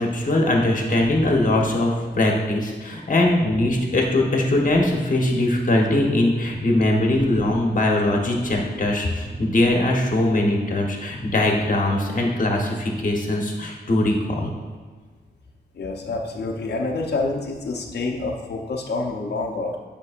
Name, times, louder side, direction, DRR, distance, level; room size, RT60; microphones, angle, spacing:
voice 1, 0.0-14.5, left 1 dB, 50° left, 0 dB, 1.1 m, -21 dB
voice 2, 15.7-19.8, left 3 dB, 70° left, 0 dB, 0.7 m, -27 dB
9.5 x 5.3 x 2.5 m, 1.5 s
wide cardioid pair, 135°, 18 cm